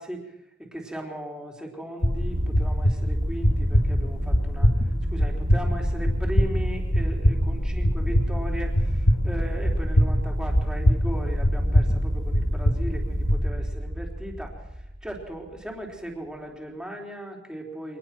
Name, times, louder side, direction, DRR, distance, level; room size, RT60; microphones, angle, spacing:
voice 1, 0.0-4.7 5.1-18.0, right 1 dB, 5° right, 0 dB, 3.9 m, -37 dB
sound 1, 2.0-13.5, equal, 80° left, 1.9 m, -24 dB
sound 2, 2.3-15.6, equal, 65° right, 4.6 m, -30 dB
25.0 x 19.5 x 6.1 m, 0.92 s
head